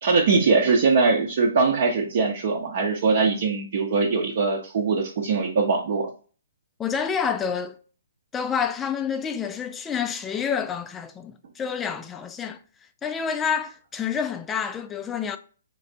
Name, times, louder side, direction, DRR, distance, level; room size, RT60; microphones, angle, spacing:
voice 1, 0.0-6.1, right 4 dB, 50° right, 0.7 m, -22 dB
voice 2, 6.8-7.8 8.3-12.6 13.0-15.4, left 7 dB, 15° left, 0.4 m, -28 dB
3.4 x 3.1 x 3.9 m
figure-of-eight pair, 130°, 0 cm